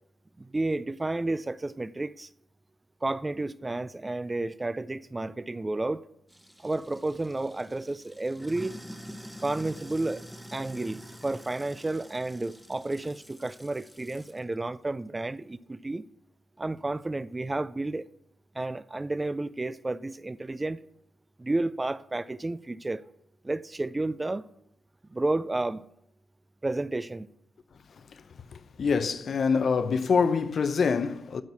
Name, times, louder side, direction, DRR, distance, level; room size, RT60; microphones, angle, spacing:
voice 1, 0.4-2.3 3.0-6.0 6.6-8.8 9.4-16.1 16.6-18.1 18.5-20.8 21.4-23.1 23.4-24.5 25.1-25.9 26.6-27.3, right 2 dB, 20° right, 0.3 m, -31 dB
Sink (filling or washing), 6.3-14.4, equal, 5° right, 0.9 m, -46 dB
voice 2, 28.5-31.4, left 5 dB, 55° left, 0.6 m, -25 dB
12.5 x 4.6 x 8.0 m
wide cardioid pair, 110°, 0 cm